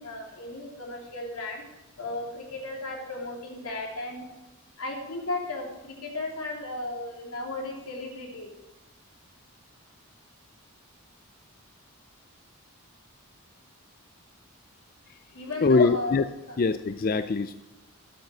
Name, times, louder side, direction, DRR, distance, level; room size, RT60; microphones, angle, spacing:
voice 1, 0.0-1.6 2.0-4.3 4.8-8.5 15.3-16.2 16.5-16.6, left 2 dB, 85° left, 0 dB, 3.4 m, -35 dB
voice 2, 15.6-16.2 16.6-17.6, left 4 dB, 40° left, 12 dB, 0.4 m, -23 dB
12.5 x 9.0 x 7.8 m, 1.0 s
head